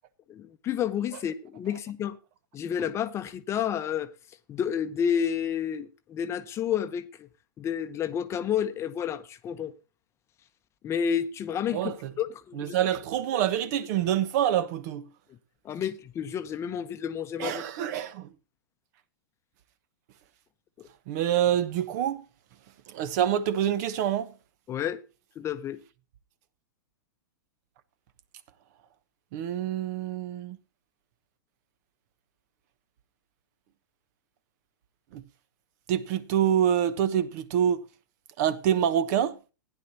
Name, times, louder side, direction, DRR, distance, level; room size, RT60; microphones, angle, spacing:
voice 1, 0.3-2.2 2.5-4.1 4.5-7.3 7.6-9.7 10.8-12.8 15.6-17.6 24.7-25.0 25.4-25.8, left 8 dB, 25° left, 0.8 m, -30 dB
voice 2, 11.7-12.1 12.5-15.1 17.4-18.3 21.1-22.2 22.9-24.3 29.3-30.6 35.1-35.2 35.9-37.9 38.4-39.4, right 10 dB, 50° right, 1.1 m, -26 dB
15.5 x 10.0 x 2.8 m
hypercardioid pair, 130°, 11 cm